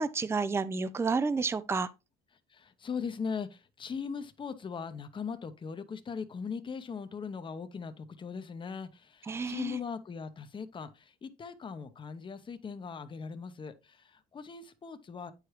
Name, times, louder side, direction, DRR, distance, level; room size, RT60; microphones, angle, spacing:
voice 1, 0.0-1.9 9.3-9.8, right 4 dB, 15° right, 0.5 m, -30 dB
voice 2, 2.5-15.3, left 6 dB, 30° left, 0.8 m, -39 dB
8.9 x 4.9 x 3.1 m
cardioid pair, 110°, 17 cm